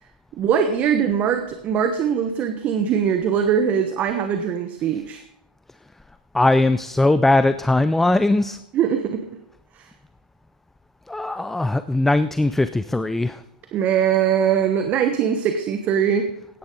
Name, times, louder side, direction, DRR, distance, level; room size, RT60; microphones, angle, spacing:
voice 1, 0.4-5.2 8.7-9.3 9.7-9.9 13.7-16.3, right 8 dB, 35° right, 8 dB, 1.1 m, -21 dB
voice 2, 6.3-8.6 11.1-13.4, left 2 dB, 5° left, 13 dB, 0.4 m, -19 dB
16.5 x 10.5 x 3.8 m, 0.81 s
hypercardioid pair, 110°, 5 cm